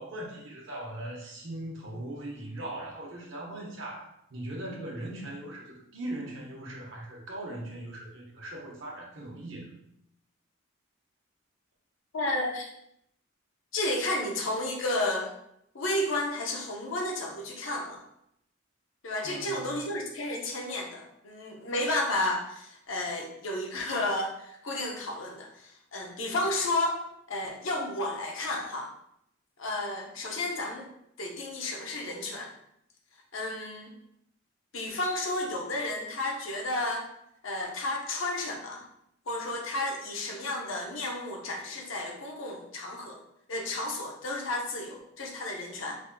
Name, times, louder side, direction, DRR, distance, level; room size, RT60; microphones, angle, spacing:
voice 1, 0.0-9.7 19.2-19.8, right 1 dB, 60° right, -2 dB, 0.9 m, -39 dB
voice 2, 12.1-12.7 13.7-15.3 15.7-18.0 19.0-27.0 27.3-28.9 29.6-30.9 31.2-32.5 33.3-33.9 34.7-37.1 37.4-38.8 39.3-43.2 43.5-46.0, left 2 dB, 65° left, 1 dB, 0.7 m, -32 dB
3.9 x 3.4 x 2.2 m, 0.75 s
head